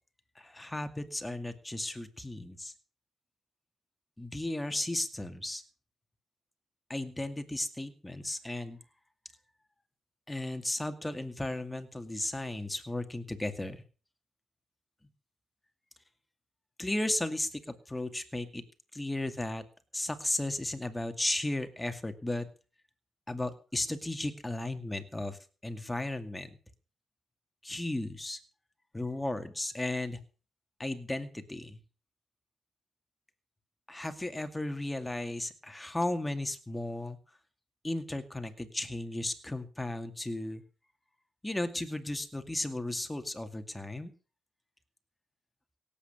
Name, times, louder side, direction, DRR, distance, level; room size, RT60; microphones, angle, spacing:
voice 1, 0.4-2.7 4.2-5.6 6.9-8.8 10.3-13.8 16.8-17.6 17.9-18.6 18.9-19.6 19.9-22.5 23.3-26.6 27.6-28.4 28.9-30.2 30.8-31.8 33.9-37.2 37.8-40.6 41.4-44.1, left 1 dB, 10° left, 8 dB, 2.3 m, -35 dB
17.0 x 8.8 x 6.7 m, 0.37 s
cardioid pair, 90°, 0 cm